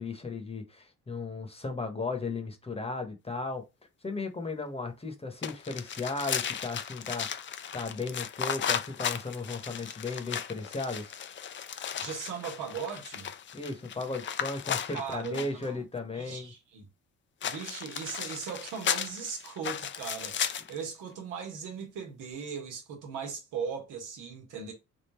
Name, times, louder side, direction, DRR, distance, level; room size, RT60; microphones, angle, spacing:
voice 1, 0.0-3.7 4.0-7.5 7.7-11.2 13.5-16.5, left 3 dB, 20° left, 1.0 m, -36 dB
sound 1, 5.4-15.7 17.4-20.8, left 8 dB, 40° left, 0.5 m, -35 dB
voice 2, 12.0-13.3 14.9-15.9 16.2-16.9 17.4-24.7, right 6 dB, 90° right, 1.4 m, -38 dB
3.6 x 2.5 x 4.1 m
cardioid pair, 90°, 30 cm